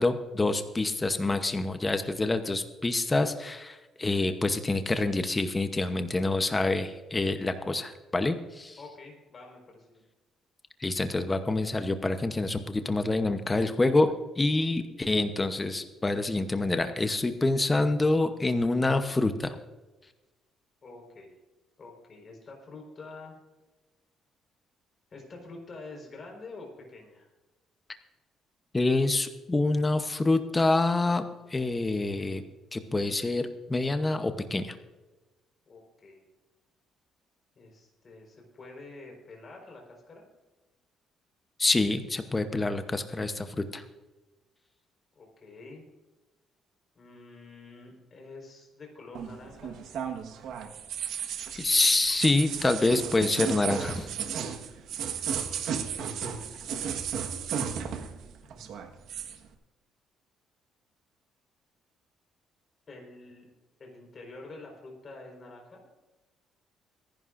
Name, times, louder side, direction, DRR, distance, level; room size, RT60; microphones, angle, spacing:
voice 1, 0.0-8.8 10.8-19.6 28.7-31.2 31.5-32.4 32.7-34.8 41.6-43.8 51.5-54.1, left 2 dB, 15° left, 8 dB, 0.8 m, -27 dB
voice 2, 8.8-10.0 20.8-21.3 21.8-23.4 25.1-27.3 35.7-36.2 37.5-40.3 45.2-45.9 46.9-49.8 55.9-56.6 58.4-58.9 62.9-63.5 63.8-65.9, left 3 dB, 35° left, 1 dB, 4.3 m, -47 dB
sound 1, 49.1-58.2 58.5-59.4, right 7 dB, 70° right, 1.4 m, -34 dB
24.5 x 11.0 x 2.5 m, 1.1 s
cardioid pair, 135°, 0 cm